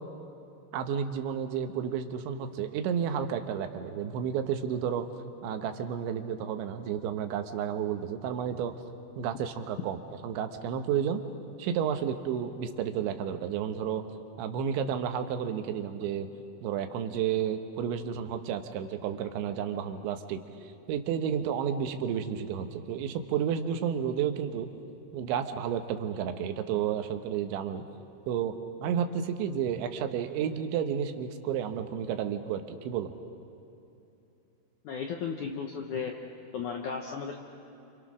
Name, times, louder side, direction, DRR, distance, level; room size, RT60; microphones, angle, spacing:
voice 1, 0.7-5.1 5.4-8.7 9.2-11.2 11.6-14.0 14.4-16.3 16.6-24.7 25.1-27.9 28.3-28.6 28.8-33.2, right 8 dB, 85° right, 7 dB, 3.6 m, -31 dB
voice 2, 34.8-36.2 36.5-37.4, left 6 dB, 70° left, 2 dB, 1.9 m, -34 dB
29.5 x 27.5 x 6.2 m, 2.9 s
omnidirectional pair, 5.1 m